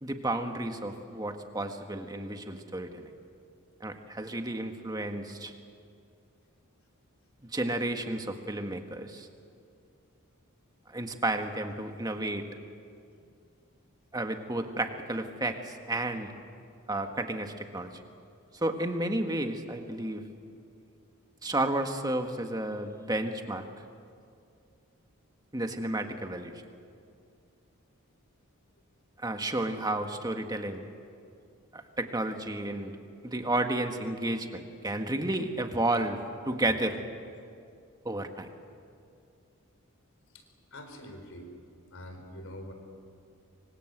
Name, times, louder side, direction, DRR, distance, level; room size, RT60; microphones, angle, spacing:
voice 1, 0.0-3.1 3.8-5.5 7.5-9.3 10.9-12.5 14.1-16.3 16.9-18.0 18.5-20.2 21.4-23.6 25.5-26.5 29.2-30.8 31.7-32.9 33.2-36.2 36.4-37.0 38.0-38.5, right 1 dB, 15° right, 5 dB, 1.6 m, -32 dB
voice 2, 40.7-41.5 41.9-42.7, equal, 60° left, 5 dB, 4.3 m, -44 dB
25.5 x 25.0 x 8.0 m, 2.4 s
head